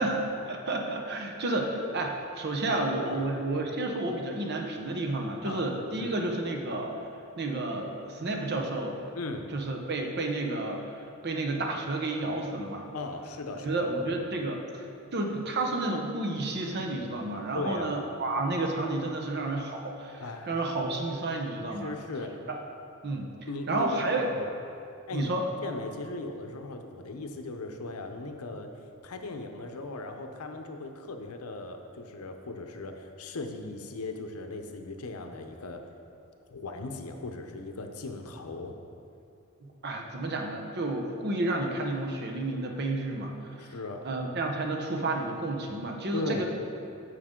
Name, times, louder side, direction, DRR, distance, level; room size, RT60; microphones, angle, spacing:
voice 1, 0.0-6.9 7.4-9.0 9.5-12.9 13.6-14.9 15.1-21.9 22.5-22.6 23.0-23.3 23.7-24.3 25.1-25.4 39.6-43.4 44.0-46.4, right 2 dB, 50° right, 2 dB, 0.9 m, -31 dB
voice 2, 2.7-3.3 5.4-5.6 6.0-6.2 9.1-9.5 12.9-13.9 17.5-17.9 20.2-20.6 21.7-22.3 23.5-24.0 24.3-24.5 25.1-25.3 25.6-28.7 29.0-35.8 36.5-38.8 43.6-44.0 46.1-46.4, left 2 dB, 80° left, 5 dB, 0.7 m, -37 dB
9.3 x 6.5 x 3.7 m, 2.6 s
head